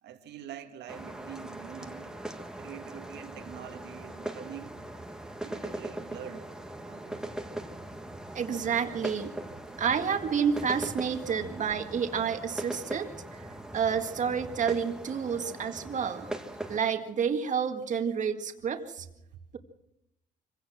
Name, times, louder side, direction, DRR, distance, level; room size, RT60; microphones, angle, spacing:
voice 1, 0.0-2.1 2.6-4.8 5.4-6.5 6.8-7.2, right 9 dB, 70° right, 2.0 m, -45 dB
sound 1, 0.9-16.8, right 1 dB, 5° right, 1.7 m, -40 dB
voice 2, 8.3-9.3 9.8-13.5 13.7-16.3 16.7-19.1, right 7 dB, 45° right, 2.0 m, -29 dB
24.5 x 17.0 x 6.2 m
cardioid pair, 120°, 19 cm